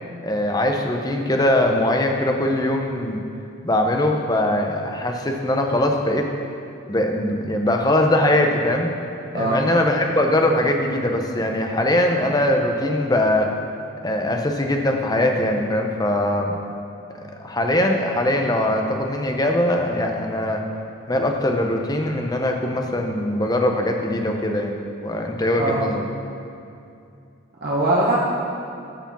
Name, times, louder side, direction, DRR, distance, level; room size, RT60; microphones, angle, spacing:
voice 1, 0.2-3.2 3.6-6.3 6.9-8.9 9.3-13.5 14.0-16.5 17.4-20.6 21.1-24.7 25.0-26.0, left 1 dB, 20° left, 2 dB, 0.6 m, -21 dB
voice 2, 27.6-28.2, right 2 dB, 50° right, -5 dB, 1.0 m, -21 dB
9.1 x 4.9 x 7.2 m, 2.6 s
head